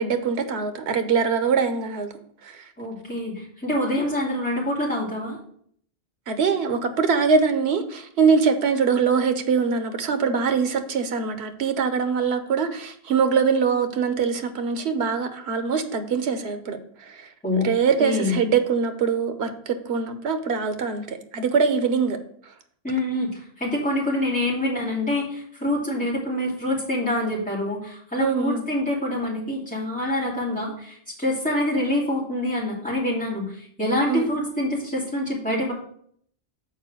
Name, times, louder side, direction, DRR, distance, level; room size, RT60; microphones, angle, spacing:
voice 1, 0.0-2.1 2.4-2.6 6.3-17.3 17.6-22.2 28.2-28.7 34.1-34.3, right 5 dB, 90° right, 9 dB, 1.1 m, -23 dB
voice 2, 2.8-5.4 17.4-17.7 18.0-18.4 22.8-35.7, left 1 dB, 5° left, -5 dB, 2.6 m, -26 dB
6.5 x 4.4 x 6.1 m, 0.63 s
omnidirectional pair, 1.1 m